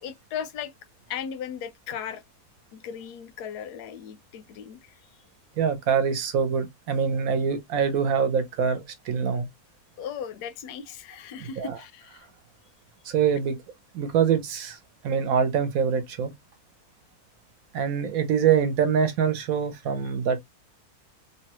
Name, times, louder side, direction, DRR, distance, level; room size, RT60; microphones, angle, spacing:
voice 1, 0.0-0.7 1.1-2.2 2.7-5.0 10.0-12.3 20.0-20.1, left 8 dB, 90° left, 1.1 m, -37 dB
voice 2, 5.6-9.5 11.4-11.8 13.0-13.6 13.9-14.8 15.0-16.3 17.7-20.4, right 7 dB, 70° right, 1.0 m, -24 dB
3.0 x 2.2 x 2.8 m
omnidirectional pair, 1.7 m